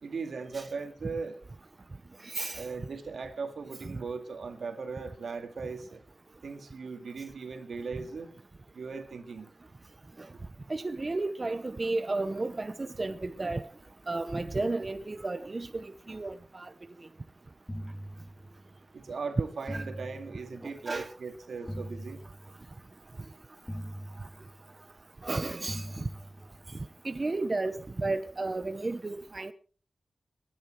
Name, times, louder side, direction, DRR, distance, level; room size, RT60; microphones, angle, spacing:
voice 1, 0.0-1.4 2.5-6.0 6.4-8.3 8.7-9.5 18.9-22.2, right 4 dB, 90° right, 2.1 m, -38 dB
voice 2, 2.2-2.6 10.7-13.6 14.1-16.7 19.7-19.9 20.6-21.1 25.2-26.1 27.0-29.5, right 2 dB, 40° right, 0.8 m, -33 dB
sound 1, 17.7-18.9 19.7-20.9 21.7-22.9 23.7-24.9 25.7-26.9, equal, 10° left, 2.0 m, -42 dB
21.0 x 10.0 x 4.5 m
wide cardioid pair, 80°, 0 cm